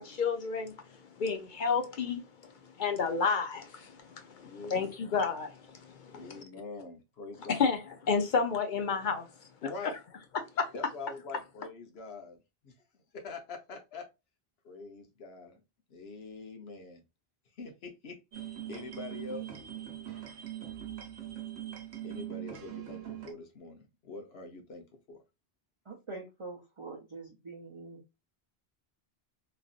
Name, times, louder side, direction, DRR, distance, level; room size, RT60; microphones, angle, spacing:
voice 1, 0.0-6.4 7.5-10.0 10.3-10.7, left 5 dB, 60° left, 0.6 m, -32 dB
voice 2, 4.4-4.9 6.1-7.7 9.6-9.9 10.7-12.4 12.6-12.7 13.1-14.0 14.6-15.6 15.9-17.0 17.6-19.5 22.0-25.2, left 3 dB, 80° left, 1.0 m, -44 dB
sound 1, 18.3-23.3, right 12 dB, 85° right, 1.0 m, -41 dB
voice 3, 25.8-28.0, right 3 dB, 40° right, 0.5 m, -44 dB
3.2 x 2.5 x 2.4 m
omnidirectional pair, 1.0 m